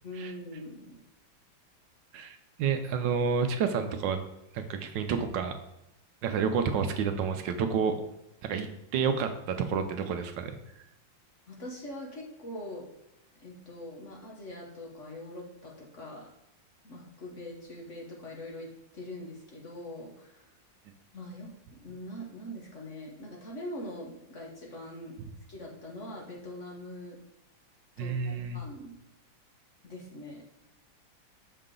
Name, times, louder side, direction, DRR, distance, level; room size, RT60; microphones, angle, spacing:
voice 1, 0.0-0.9 11.5-12.8 13.4-16.3 16.8-20.5 21.1-25.2 25.5-27.2 28.0-28.9 29.8-30.4, left 1 dB, 45° left, -1 dB, 1.2 m, -43 dB
voice 2, 2.1-4.2 4.5-5.6 6.2-7.9 8.4-10.5 28.0-28.6, right 6 dB, 75° right, 7 dB, 1.2 m, -29 dB
6.6 x 4.9 x 3.7 m, 0.87 s
omnidirectional pair, 2.1 m